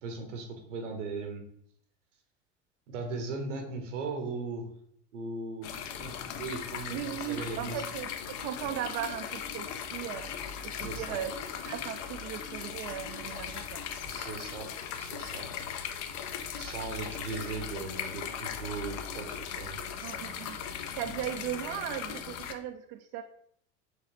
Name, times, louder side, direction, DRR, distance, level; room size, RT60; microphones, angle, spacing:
voice 1, 0.0-1.4 2.9-4.7 5.1-7.8 10.7-11.2 13.5-14.7 14.9-15.5 16.1-16.3 16.5-19.8 21.0-21.2, right 3 dB, 75° right, 4 dB, 1.1 m, -38 dB
sound 1, 5.6-22.5, left 8 dB, 45° left, 0.5 m, -38 dB
voice 2, 6.9-8.1 8.4-10.3 10.6-11.3 11.6-13.8 20.0-20.6 21.0-23.2, right 10 dB, 45° right, 7 dB, 0.4 m, -37 dB
5.0 x 3.2 x 3.0 m, 0.65 s
hypercardioid pair, 75°, 37 cm